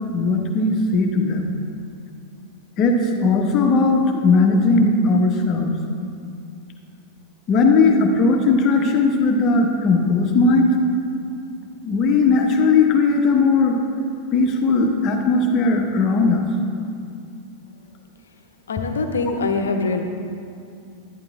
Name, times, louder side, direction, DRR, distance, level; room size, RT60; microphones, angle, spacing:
voice 1, 0.0-1.5 2.8-5.7 7.5-10.8 11.8-13.8 14.3-16.4, left 3 dB, 35° left, 3 dB, 1.2 m, -18 dB
voice 2, 18.7-20.0, left 3 dB, 70° left, 6 dB, 0.9 m, -23 dB
11.0 x 11.0 x 3.6 m, 2.4 s
figure-of-eight pair, 90°, 0 cm